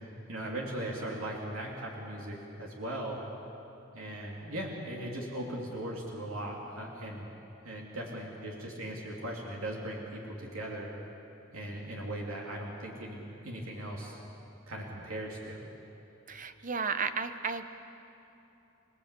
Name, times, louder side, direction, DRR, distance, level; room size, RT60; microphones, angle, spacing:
voice 1, 0.3-3.2 3.9-7.3 7.6-10.9 11.5-14.2 14.7-15.6, right 1 dB, 85° right, -2 dB, 3.0 m, -38 dB
voice 2, 16.3-17.7, right 5 dB, 40° right, 9 dB, 0.9 m, -33 dB
28.0 x 18.5 x 8.3 m, 3.0 s
head